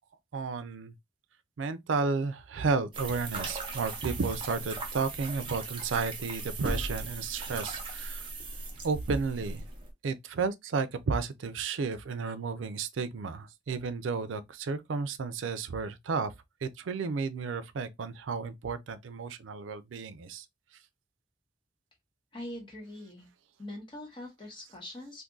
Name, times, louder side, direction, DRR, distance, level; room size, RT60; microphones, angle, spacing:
voice 1, 0.3-0.9 1.6-8.3 8.8-9.6 10.0-16.3 16.6-20.5, right 4 dB, 90° right, 0.4 m, -32 dB
sound 1, 2.9-9.9, right 2 dB, 25° right, 0.7 m, -38 dB
voice 2, 22.3-23.3 23.6-25.2, left 1 dB, 25° left, 1.2 m, -43 dB
2.5 x 2.5 x 3.7 m
head